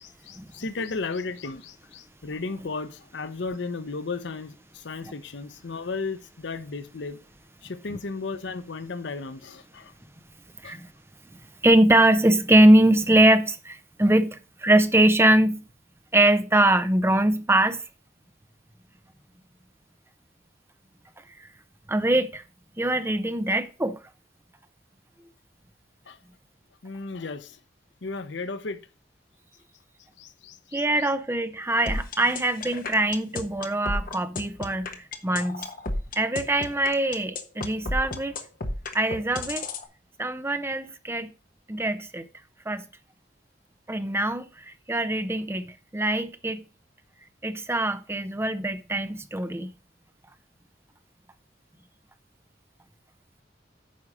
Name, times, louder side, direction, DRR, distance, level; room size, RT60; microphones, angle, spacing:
voice 1, 0.0-7.2 7.6-9.9 10.6-10.7 26.1-26.2 26.8-27.6 28.0-28.8 30.2-31.1, left 3 dB, 75° left, 0.8 m, -34 dB
voice 2, 11.6-15.6 16.1-17.8 21.9-22.4 22.8-24.0 30.7-35.7 36.2-38.3 38.9-39.7 40.2-41.3 41.7-42.3 42.7-42.8 43.9-46.6 47.4-49.7, right 1 dB, 15° right, 0.7 m, -22 dB
sound 1, 31.9-39.8, left 2 dB, 50° left, 1.2 m, -32 dB
9.5 x 5.4 x 4.8 m
head